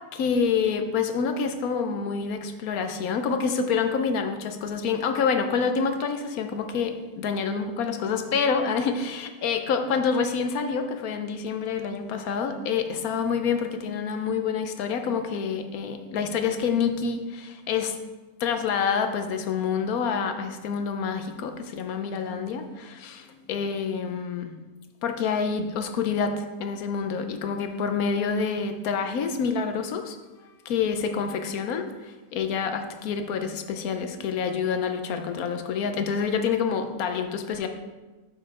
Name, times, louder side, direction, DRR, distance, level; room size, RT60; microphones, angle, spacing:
voice 1, 0.1-18.0 18.4-24.6 25.0-30.2 30.6-37.7, left 6 dB, 75° left, 7 dB, 1.1 m, -27 dB
6.8 x 5.4 x 4.8 m, 1.2 s
omnidirectional pair, 1.6 m